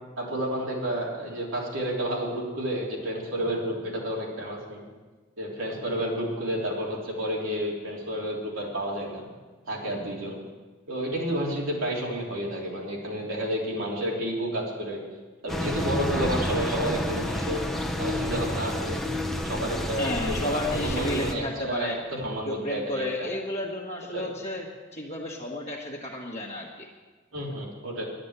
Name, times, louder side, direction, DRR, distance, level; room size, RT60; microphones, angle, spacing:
voice 1, 0.2-4.9 5.4-9.2 9.7-10.4 10.9-15.0 15.4-17.6 18.0-19.0 19.4-23.3 24.1-24.3 27.3-28.0, equal, 85° right, -3 dB, 3.4 m, -30 dB
sound 1, 15.5-21.3, left 1 dB, ahead, 1.0 m, -30 dB
voice 2, 20.0-22.0 22.4-24.6 24.9-26.9, left 1 dB, 30° left, -4 dB, 1.5 m, -32 dB
10.5 x 10.0 x 8.2 m, 1.3 s
head